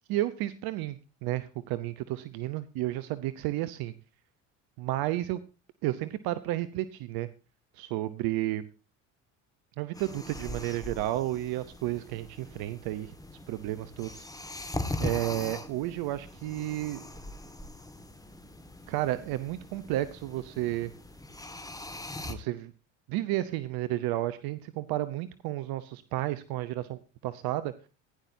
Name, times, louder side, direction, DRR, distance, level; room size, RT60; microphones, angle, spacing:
voice 1, 0.1-3.9 4.8-5.4 5.8-7.3 7.7-8.6 9.8-13.1 13.5-14.3 15.0-17.0 18.9-20.9 22.3-22.7 23.1-27.7, right 15 dB, 65° right, 13 dB, 0.9 m, -32 dB
sound 1, 9.9-22.3, left 2 dB, 10° left, 1.8 m, -41 dB
16.5 x 11.0 x 2.8 m, 0.32 s
hypercardioid pair, 70°, 39 cm